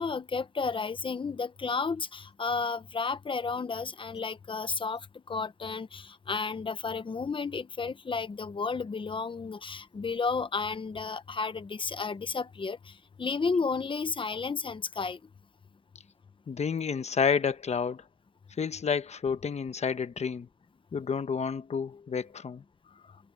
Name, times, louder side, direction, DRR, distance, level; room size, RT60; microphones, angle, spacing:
voice 1, 0.0-15.2, left 4 dB, 45° left, 0.8 m, -32 dB
voice 2, 16.5-18.0 18.6-20.5 20.9-22.6, left 6 dB, 70° left, 1.0 m, -30 dB
wide cardioid pair, 135°, 12 cm